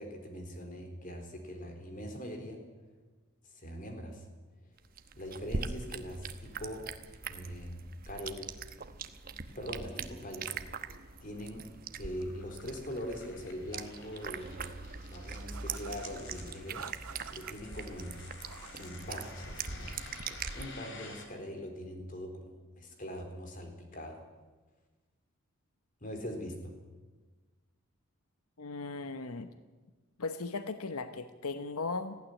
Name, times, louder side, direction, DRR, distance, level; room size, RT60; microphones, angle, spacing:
voice 1, 0.0-2.6 3.4-4.3 5.2-6.9 7.3-7.8 8.1-8.5 9.6-10.8 11.2-11.7 12.0-14.8 15.1-16.9 17.3-18.2 18.7-19.9 20.5-24.2 26.0-26.7, equal, 40° left, 5 dB, 3.8 m, -42 dB
sound 1, 4.8-20.7, right 5 dB, 40° right, 1.0 m, -42 dB
sound 2, 10.6-21.3, left 4 dB, 55° left, 3.4 m, -52 dB
sound 3, 15.3-16.1 16.7-17.5 18.2-18.8 19.1-19.7, right 7 dB, 80° right, 0.8 m, -49 dB
voice 2, 28.6-29.5 30.2-32.2, left 3 dB, 90° left, 10 dB, 0.9 m, -37 dB
18.5 x 15.5 x 10.0 m, 1.3 s
head